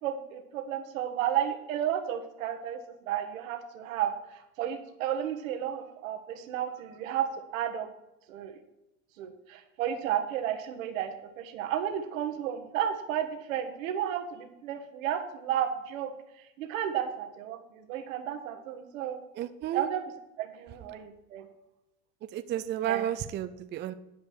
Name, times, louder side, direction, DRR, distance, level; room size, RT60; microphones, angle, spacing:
voice 1, 0.0-7.2 7.5-7.9 8.3-8.5 9.2-16.1 16.4-19.2 19.7-20.0 20.4-21.5 22.8-23.1, right 10 dB, 80° right, 7 dB, 1.5 m, -32 dB
voice 2, 19.4-19.9 22.2-23.9, right 11 dB, 30° right, 11 dB, 0.5 m, -32 dB
10.5 x 5.1 x 6.3 m, 0.93 s
supercardioid pair, 110°, 40 cm